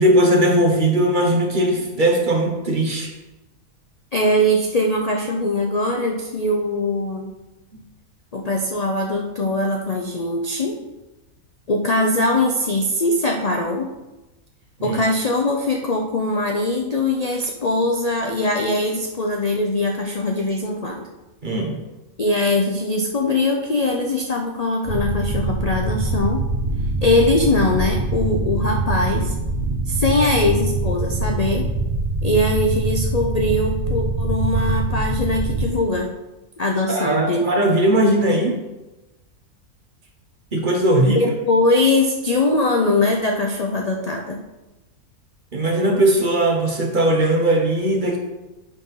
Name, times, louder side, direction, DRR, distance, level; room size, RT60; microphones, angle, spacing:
voice 1, 0.0-3.1 14.8-15.0 21.4-21.8 36.9-38.6 40.5-41.2 45.5-48.2, right 1 dB, 40° right, 1 dB, 1.0 m, -18 dB
voice 2, 4.1-7.3 8.3-10.8 11.7-13.9 14.8-21.1 22.2-26.4 27.0-29.3 29.9-31.7 32.2-36.1 36.6-37.4 41.1-44.4, left 2 dB, 55° left, 2 dB, 0.4 m, -21 dB
sound 1, 24.8-35.7, right 2 dB, 60° right, 1.5 m, -23 dB
8.3 x 3.8 x 5.5 m, 1.1 s
omnidirectional pair, 1.5 m